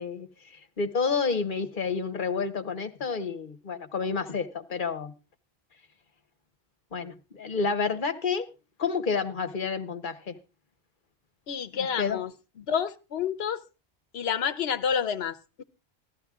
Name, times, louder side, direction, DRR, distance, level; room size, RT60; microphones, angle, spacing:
voice 1, 0.0-5.1 6.9-8.5 8.8-10.4 12.0-12.2, left 5 dB, 55° left, 1.3 m, -30 dB
voice 2, 11.5-12.3 12.6-13.6 14.1-15.6, left 7 dB, 80° left, 1.1 m, -29 dB
14.5 x 12.5 x 3.6 m
omnidirectional pair, 1.0 m